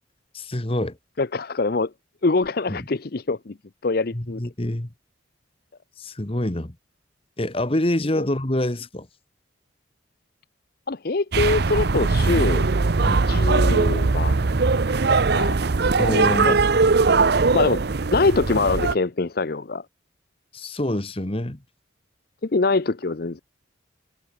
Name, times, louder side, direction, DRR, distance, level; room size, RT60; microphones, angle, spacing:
voice 1, 0.3-1.0 2.7-2.8 4.1-4.9 6.0-6.7 7.4-9.1 13.0-13.3 16.0-16.7 20.5-21.6, left 1 dB, 30° left, 1.4 m, -26 dB
voice 2, 1.2-1.9 2.2-3.5 3.8-4.4 10.9-12.7 13.3-14.4 15.1-15.6 16.4-16.6 17.5-17.8 18.1-19.8 22.4-23.4, left 3 dB, 50° left, 0.7 m, -23 dB
sound 1, 11.3-18.9, right 4 dB, 55° right, 0.7 m, -20 dB
head